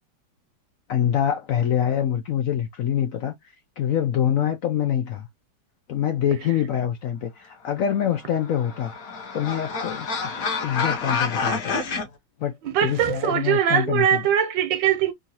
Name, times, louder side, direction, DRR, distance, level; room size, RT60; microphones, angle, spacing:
voice 1, 0.9-3.3 3.8-5.3 5.9-8.9 9.3-10.3 10.6-11.8 12.4-14.2, left 9 dB, 70° left, 0.8 m, -25 dB
sound 1, 8.2-12.0, left 4 dB, 55° left, 1.4 m, -28 dB
voice 2, 12.6-15.1, right 9 dB, 80° right, 1.5 m, -21 dB
3.8 x 2.7 x 2.8 m
omnidirectional pair, 1.9 m